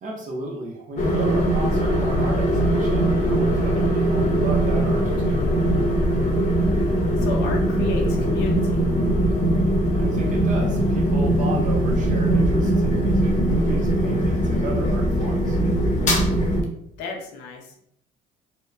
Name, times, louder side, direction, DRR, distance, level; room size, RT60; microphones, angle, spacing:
voice 1, 0.0-5.5 9.9-15.6, right 1 dB, 50° right, 1 dB, 0.6 m, -33 dB
sound 1, 1.0-16.6, right 1 dB, 45° left, 0.7 m, -21 dB
voice 2, 7.2-8.8 17.0-17.8, left 4 dB, 90° left, 1 dB, 0.7 m, -32 dB
2.8 x 2.1 x 2.3 m, 0.71 s
cardioid pair, 110°, 17 cm